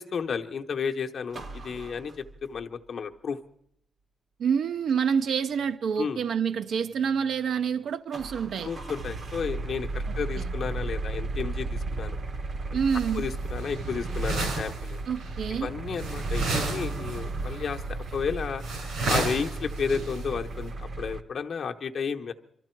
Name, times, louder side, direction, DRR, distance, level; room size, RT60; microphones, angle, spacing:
voice 1, 0.0-3.4 6.0-6.2 8.6-12.2 13.1-15.0 15.6-18.6 19.1-22.3, left 6 dB, 50° left, 0.9 m, -32 dB
sound 1, 1.3-2.6 8.1-21.2, right 3 dB, 45° right, 0.8 m, -34 dB
voice 2, 4.4-8.7 10.4-10.5 12.7-13.2 15.1-15.7, right 7 dB, 65° right, 0.5 m, -27 dB
sound 2, 12.9-13.3 13.6-14.9 15.2-15.4 16.0-17.2 17.5-17.8 18.1-18.2 18.6-20.2, right 3 dB, 85° right, 5.6 m, -32 dB
24.0 x 13.5 x 4.5 m
cardioid pair, 135°, 0 cm